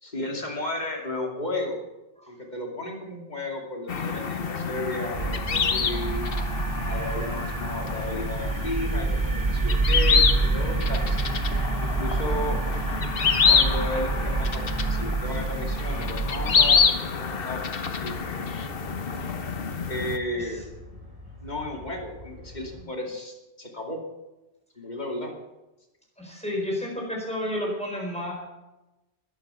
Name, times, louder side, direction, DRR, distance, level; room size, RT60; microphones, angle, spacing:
voice 1, 0.0-1.8 2.3-6.3 6.8-11.2 11.8-12.6 13.5-18.6 19.9-20.7 21.4-24.0 24.8-25.3, left 1 dB, 40° left, 1 dB, 2.7 m, -34 dB
sound 1, 3.9-20.2, left 6 dB, 55° left, 1.2 m, -27 dB
sound 2, 5.1-16.9, right 3 dB, 35° right, 0.3 m, -27 dB
sound 3, 16.1-22.9, left 2 dB, 70° right, 4.4 m, -46 dB
voice 2, 26.2-28.3, left 1 dB, 5° left, -1 dB, 4.8 m, -31 dB
20.5 x 8.6 x 6.9 m, 1.0 s
omnidirectional pair, 1.1 m